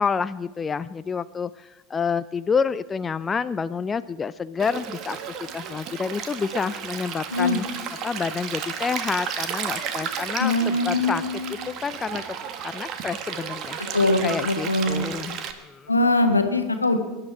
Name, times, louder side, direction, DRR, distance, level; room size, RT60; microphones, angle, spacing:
voice 1, 0.0-5.2 5.5-7.7 8.0-11.2 11.5-12.2 12.6-13.8 14.2-15.9, left 5 dB, 20° left, 15 dB, 0.4 m, -28 dB
Stream, 4.6-15.5, right 7 dB, 40° right, 1.4 m, -33 dB
voice 2, 10.4-11.5 13.9-15.1 15.9-17.0, left 2 dB, 85° left, 7 dB, 1.4 m, -22 dB
22.5 x 11.0 x 4.8 m, 1.1 s
figure-of-eight pair, 80°, 0 cm